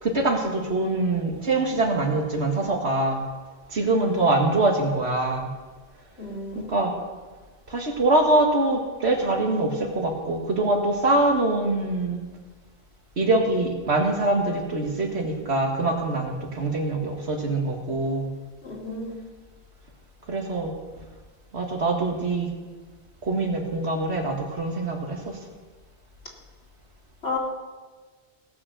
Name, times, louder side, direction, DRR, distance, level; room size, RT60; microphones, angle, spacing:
voice 1, 0.0-3.2 3.7-5.5 6.5-6.9 7.7-12.2 13.2-18.3 20.3-20.7 21.5-22.5 23.2-25.4, right 2 dB, 80° right, 1 dB, 2.1 m, -24 dB
voice 2, 6.2-6.7 18.6-19.1 27.2-27.4, left 3 dB, 75° left, -2 dB, 2.8 m, -32 dB
17.0 x 6.4 x 6.8 m, 1.3 s
omnidirectional pair, 1.1 m